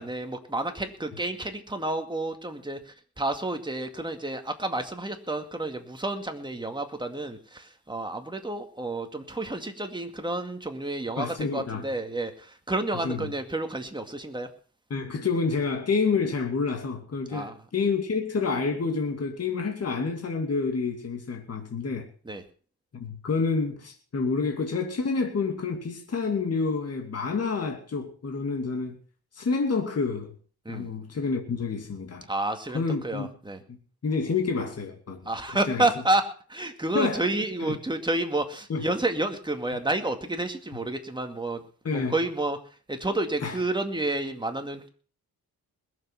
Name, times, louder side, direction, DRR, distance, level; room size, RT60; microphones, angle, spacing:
voice 1, 0.0-14.5 17.3-17.5 22.3-22.4 30.7-30.9 32.3-33.6 35.3-41.6 41.9-42.6 42.9-44.9, right 2 dB, 10° right, 2.1 m, -30 dB
voice 2, 11.2-11.8 13.0-13.3 14.9-22.1 22.9-29.0 29.4-30.3 30.7-32.3 32.7-33.3 33.7-33.8 34.0-35.3 35.7-35.9 36.9-37.2 37.6-37.8 38.7-38.8 41.8-42.1 43.4-43.6, left 4 dB, 40° left, 2.5 m, -28 dB
20.5 x 7.6 x 5.8 m
cardioid pair, 100°, 38 cm